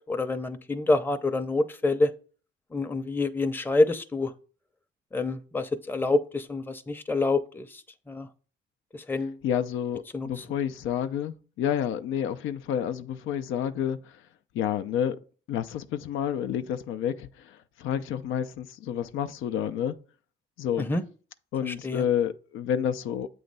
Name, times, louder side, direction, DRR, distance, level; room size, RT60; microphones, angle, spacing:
voice 1, 0.1-2.1 2.7-4.3 5.1-7.7 8.1-8.3 9.1-9.4 10.1-10.4 20.8-21.0 21.6-22.0, left 2 dB, 10° left, 0.6 m, -27 dB
voice 2, 9.4-14.2 14.5-15.2 15.5-20.0 20.6-20.9 21.5-23.3, left 9 dB, 85° left, 0.5 m, -29 dB
7.9 x 3.1 x 5.3 m
cardioid pair, 90°, 20 cm